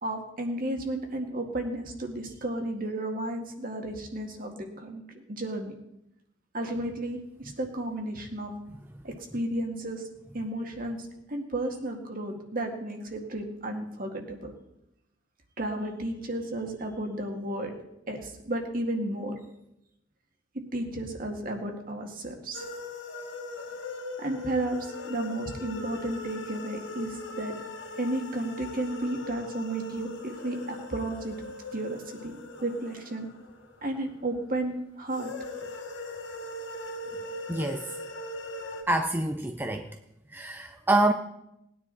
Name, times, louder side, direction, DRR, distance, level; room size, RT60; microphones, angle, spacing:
voice 1, 0.0-5.8 6.5-8.5 9.0-10.1 10.3-14.5 15.6-17.7 18.1-19.3 20.7-22.7 24.2-27.5 28.0-31.4 31.7-32.4 32.6-33.3 33.8-35.3, right 1 dB, 45° right, 3 dB, 2.0 m, -33 dB
sound 1, 22.5-34.3 35.1-38.8, left 2 dB, 75° left, 2.2 m, -40 dB
voice 2, 37.5-37.9 38.9-39.9 40.3-41.1, right 2 dB, 10° right, 5 dB, 0.6 m, -26 dB
19.5 x 9.7 x 4.1 m, 0.84 s
head